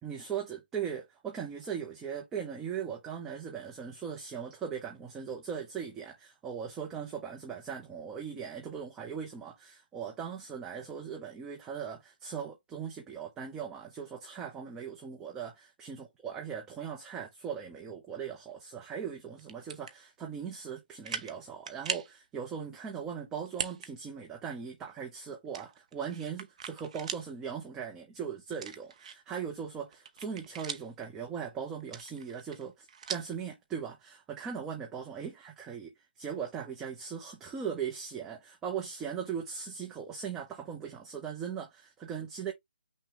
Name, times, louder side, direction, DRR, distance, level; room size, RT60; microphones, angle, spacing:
voice 1, 0.0-42.5, right 7 dB, 10° right, 0.7 m, -39 dB
sound 1, 19.4-19.9 20.5-20.6 21.0-21.4 21.7-22.1 23.5-23.9 24.3-24.4 25.5-27.3 27.7-27.8 28.5-29.4 29.8-31.0 31.8-33.4, right 7 dB, 40° right, 0.8 m, -39 dB
5.9 x 2.3 x 3.6 m
figure-of-eight pair, 155°, 6 cm